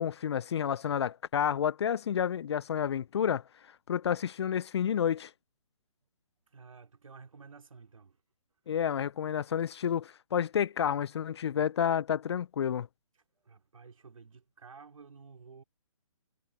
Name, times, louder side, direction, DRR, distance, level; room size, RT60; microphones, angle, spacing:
voice 1, 0.0-3.4 3.9-5.3 8.7-12.9, left 8 dB, 50° left, 0.5 m, -30 dB
voice 2, 6.5-8.2 13.4-15.6, right 5 dB, 70° right, 2.9 m, -52 dB
figure-of-eight pair, 140°, 17 cm